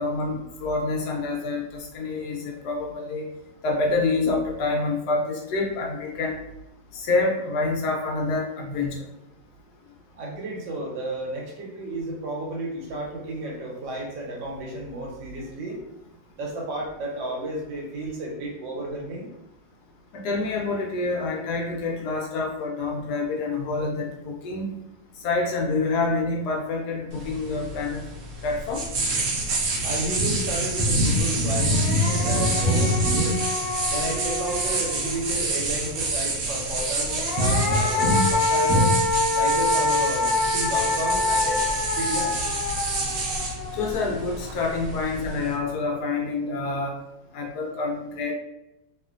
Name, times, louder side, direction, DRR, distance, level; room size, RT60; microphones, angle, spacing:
voice 1, 0.0-3.3 3.6-6.4 6.9-9.0 20.1-24.7 25.2-28.0 28.4-28.8 43.8-47.0 47.3-48.4, left 3 dB, 70° left, 1 dB, 1.0 m, -27 dB
voice 2, 10.2-15.8 16.3-19.3 29.8-33.4 33.9-38.9 39.3-42.4, right 1 dB, 90° right, -1 dB, 1.5 m, -32 dB
scratching dry, 27.1-45.6, right 1 dB, 65° right, 0.9 m, -26 dB
sound 1, 31.2-31.3 31.6-35.3 36.9-44.2, left 3 dB, 90° left, 1.4 m, -26 dB
3.0 x 2.5 x 2.4 m, 0.88 s
omnidirectional pair, 1.9 m